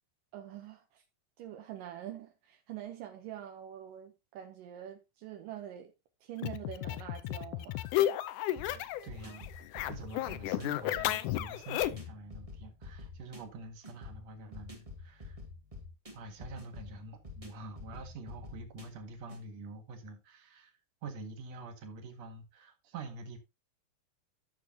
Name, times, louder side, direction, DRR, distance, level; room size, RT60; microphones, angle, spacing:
voice 1, 0.3-1.0 1.4-5.9 6.2-7.9, right 11 dB, 75° right, 2.5 m, -45 dB
sound 1, 6.4-9.1 9.3-12.1, left 13 dB, 80° left, 2.0 m, -33 dB
sound 2, 8.6-19.4, left 3 dB, 40° right, 0.5 m, -48 dB
voice 2, 8.6-9.5 9.9-15.4 16.1-20.7 21.0-23.4, right 3 dB, 55° right, 2.7 m, -46 dB
12.5 x 6.9 x 2.8 m
omnidirectional pair, 4.0 m